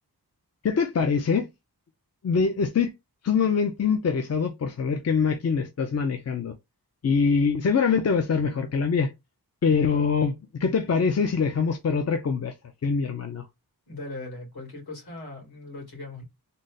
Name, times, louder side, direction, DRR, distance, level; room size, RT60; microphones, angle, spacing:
voice 1, 0.6-1.5 2.2-2.9 3.2-6.5 7.0-9.1 9.6-12.5 12.8-13.5, left 5 dB, 40° left, 0.5 m, -24 dB
voice 2, 13.9-16.2, left 2 dB, 70° left, 2.4 m, -39 dB
3.8 x 2.1 x 3.9 m
wide cardioid pair, 110°, 39 cm